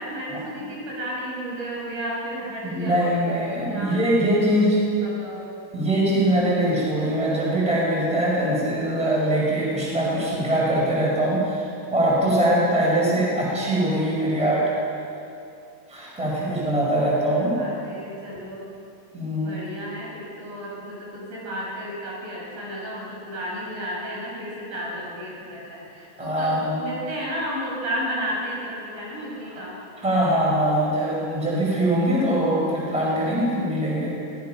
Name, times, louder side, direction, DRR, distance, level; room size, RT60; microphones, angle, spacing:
voice 1, 0.0-3.3 3.7-5.6 6.1-6.4 17.3-18.7 19.4-29.8, equal, 65° right, -4 dB, 8.0 m, -33 dB
voice 2, 2.6-4.8 5.7-14.7 15.9-17.6 19.1-19.6 26.2-26.8 30.0-34.1, right 1 dB, ahead, -5 dB, 4.9 m, -22 dB
24.0 x 18.0 x 6.0 m, 2.6 s
omnidirectional pair, 6.0 m